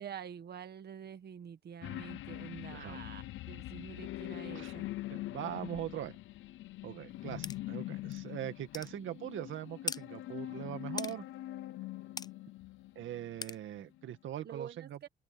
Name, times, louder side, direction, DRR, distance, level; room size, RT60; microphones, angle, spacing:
voice 1, 0.0-4.9 14.4-15.1, right 8 dB, 55° right, 1.7 m, -47 dB
sound 1, 1.8-13.6 14.0-14.1, left 15 dB, 80° left, 0.7 m, -43 dB
voice 2, 5.1-6.2 6.8-11.2 13.0-15.1, right 12 dB, 75° right, 2.0 m, -41 dB
sound 2, 7.4-7.6 8.1-8.2 8.7-8.9 9.9-10.0 11.0-11.1 12.2-12.3 13.4-13.6, left 4 dB, 20° left, 0.6 m, -38 dB
open air
cardioid pair, 90°, 20 cm